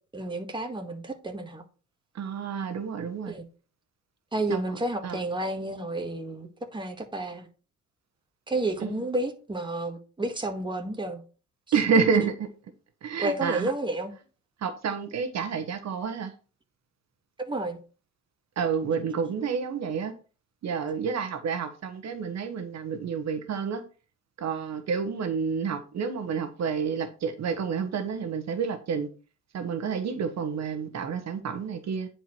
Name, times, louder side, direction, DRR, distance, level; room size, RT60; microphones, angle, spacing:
voice 1, 0.1-1.6 3.3-3.5 4.3-7.5 8.5-11.2 13.2-14.1 17.4-17.8, right 2 dB, 15° right, 1.8 m, -31 dB
voice 2, 2.1-3.3 4.5-4.8 5.0-5.2 8.8-9.0 11.7-12.5 13.0-13.7 14.6-16.3 18.6-20.1 20.6-23.8 24.4-29.1 29.5-32.1, right 6 dB, 60° right, 1.3 m, -29 dB
9.8 x 4.6 x 4.5 m
cardioid pair, 90°, 30 cm